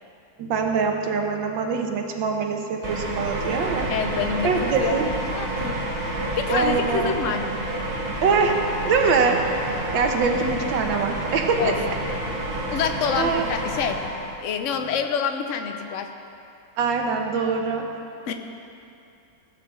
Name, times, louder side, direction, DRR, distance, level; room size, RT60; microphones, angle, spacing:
voice 1, 0.4-3.9 4.4-5.2 6.5-7.1 8.2-8.6 8.8-9.4 9.7-11.9 12.5-12.7 13.2-13.4 16.8-17.9, right 5 dB, 90° right, 3 dB, 1.7 m, -23 dB
sound 1, 2.8-14.4, right 1 dB, 30° right, 1.6 m, -29 dB
voice 2, 3.9-4.5 4.8-5.0 5.3-5.8 6.4-7.5 11.6-11.8 12.7-14.0 14.4-16.1 18.3-18.4, left 7 dB, 55° left, 6 dB, 0.9 m, -26 dB
17.0 x 5.7 x 7.5 m, 2.7 s
omnidirectional pair, 2.0 m